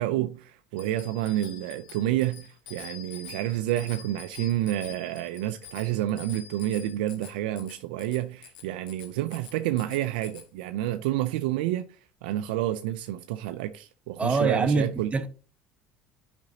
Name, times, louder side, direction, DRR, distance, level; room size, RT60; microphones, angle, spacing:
voice 1, 0.0-15.1, right 13 dB, 80° right, 0.4 m, -29 dB
Bicycle bell, 0.8-10.5, left 9 dB, 85° left, 1.2 m, -47 dB
voice 2, 14.2-15.3, right 3 dB, 25° right, 1.0 m, -25 dB
10.5 x 5.0 x 2.8 m
hypercardioid pair, 75°, 5 cm